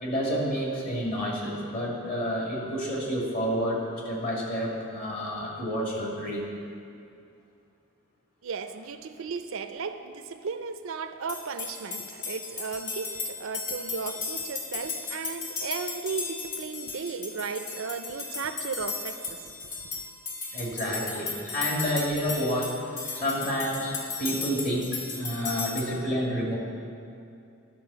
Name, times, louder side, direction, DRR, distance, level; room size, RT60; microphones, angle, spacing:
voice 1, 0.0-6.5 20.5-22.8 23.1-26.6, equal, 40° left, -3 dB, 2.0 m, -29 dB
voice 2, 8.4-19.5 20.8-21.2 23.1-23.2, right 5 dB, 65° right, 9 dB, 0.5 m, -35 dB
sound 1, 11.3-25.8, left 4 dB, 60° left, 1.4 m, -35 dB
11.5 x 4.7 x 6.8 m, 2.6 s
head